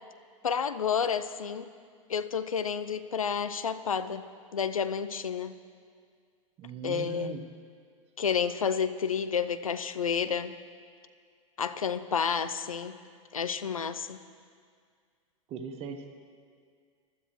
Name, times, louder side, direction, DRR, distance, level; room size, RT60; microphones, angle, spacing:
voice 1, 0.4-1.7 2.1-4.3 4.5-5.5 6.8-7.4 8.2-10.6 11.6-13.0 13.3-14.2, left 7 dB, 90° left, 12 dB, 0.6 m, -30 dB
voice 2, 6.6-7.4 15.5-16.1, right 7 dB, 35° right, 6 dB, 1.0 m, -39 dB
20.5 x 12.5 x 3.1 m, 2.1 s
hypercardioid pair, 95°, 17 cm